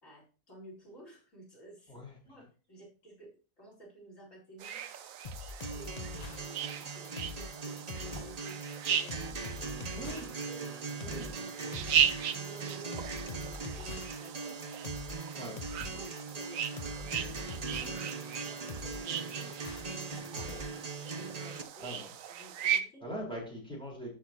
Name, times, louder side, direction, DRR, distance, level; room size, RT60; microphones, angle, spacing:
voice 1, 0.0-4.8 5.6-8.6 8.8-9.2 10.5-10.7 11.0-14.8 15.3-15.6 15.8-20.8 21.1-22.0 22.4-23.0, right 1 dB, 55° left, -3 dB, 4.8 m, -52 dB
sound 1, 4.6-22.8, right 8 dB, 65° right, 1.1 m, -37 dB
sound 2, 5.2-20.6, left 4 dB, 30° left, 0.8 m, -44 dB
Acoustic guitar, 5.6-21.6, right 4 dB, 40° right, 0.6 m, -41 dB
voice 2, 9.9-10.2 11.1-11.3 15.4-15.5 21.8-22.1 23.0-24.1, equal, 5° left, -4 dB, 4.3 m, -41 dB
14.0 x 6.3 x 2.9 m, 0.36 s
omnidirectional pair, 1.7 m